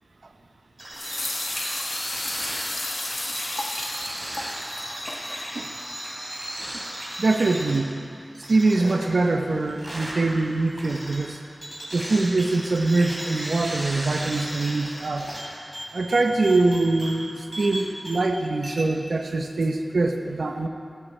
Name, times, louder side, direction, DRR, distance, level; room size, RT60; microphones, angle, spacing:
sound 1, 0.8-18.4 18.6-18.8, right 1 dB, 30° right, 3.5 m, -35 dB
sound 2, 0.9-5.4, left 2 dB, 55° left, 1.5 m, -33 dB
voice 1, 7.2-8.0 8.5-11.4 11.9-15.3 15.9-20.7, right 3 dB, 70° right, 5 dB, 0.8 m, -23 dB
15.0 x 14.0 x 4.4 m, 2.4 s
wide cardioid pair, 90°, 0 cm